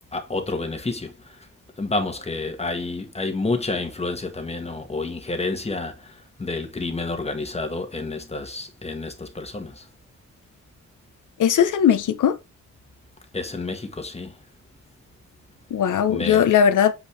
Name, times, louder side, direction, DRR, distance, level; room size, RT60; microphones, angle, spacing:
voice 1, 0.1-1.5 1.8-9.9 13.3-14.4 16.1-16.5, left 3 dB, 20° left, 1.6 m, -29 dB
voice 2, 11.4-12.4 15.7-16.9, left 8 dB, 80° left, 1.2 m, -18 dB
8.7 x 5.0 x 3.4 m
wide cardioid pair, 130°, 31 cm